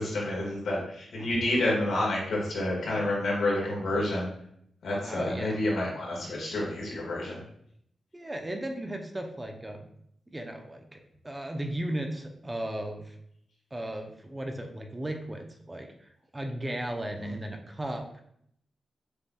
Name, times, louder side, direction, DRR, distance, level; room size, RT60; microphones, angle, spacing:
voice 1, 0.0-4.3 4.8-7.4 17.1-17.3, left 1 dB, 80° left, -4 dB, 1.5 m, -29 dB
voice 2, 5.0-5.6 8.1-9.9 10.3-13.2 13.7-18.2, right 1 dB, 20° right, 4 dB, 0.6 m, -36 dB
6.8 x 2.6 x 2.3 m, 0.70 s
cardioid pair, 75°, 0 cm